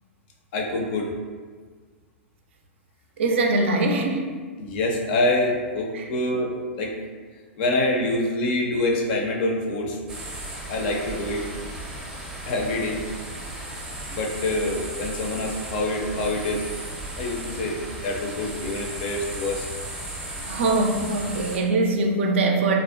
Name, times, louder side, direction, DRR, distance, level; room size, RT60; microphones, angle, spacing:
voice 1, 0.5-1.1 4.6-7.0 7.6-10.0 10.7-11.5 12.5-13.1 14.1-16.7 17.2-19.7, left 2 dB, 50° left, 1 dB, 0.4 m, -26 dB
voice 2, 3.2-4.3 5.9-6.1 20.4-22.8, right 2 dB, 60° right, 2 dB, 0.3 m, -22 dB
sound 1, 10.1-21.6, right 1 dB, 10° right, 0.5 m, -35 dB
2.5 x 2.1 x 2.4 m, 1.5 s
figure-of-eight pair, 105°, 7 cm